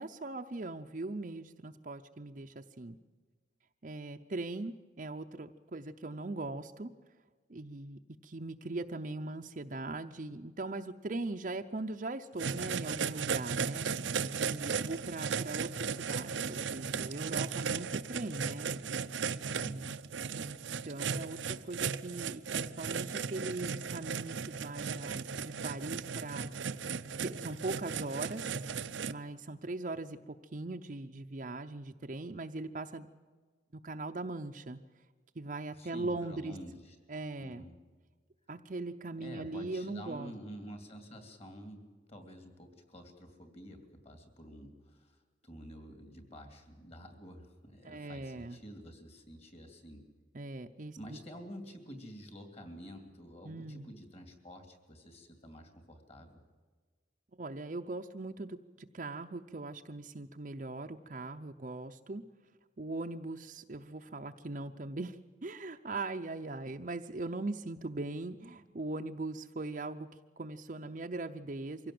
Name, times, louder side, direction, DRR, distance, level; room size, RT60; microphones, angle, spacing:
voice 1, 0.0-3.0 3.8-6.9 7.5-14.0 14.4-18.8 19.4-19.9 20.4-20.6 20.8-26.5 27.2-28.6 29.1-33.1 33.7-34.8 35.4-36.6 37.1-37.6 38.5-40.3 47.8-48.6 50.3-51.2 53.4-53.8 57.4-62.2 62.8-70.1 70.4-71.9, right 2 dB, 45° right, 5 dB, 0.6 m, -40 dB
sound 1, 12.4-29.1, right 6 dB, 80° right, 0.6 m, -36 dB
voice 2, 19.6-19.9 35.8-37.0 37.4-37.7 39.2-50.1 51.0-56.4, equal, 35° left, 6 dB, 2.8 m, -49 dB
24.0 x 16.5 x 7.7 m, 1.4 s
head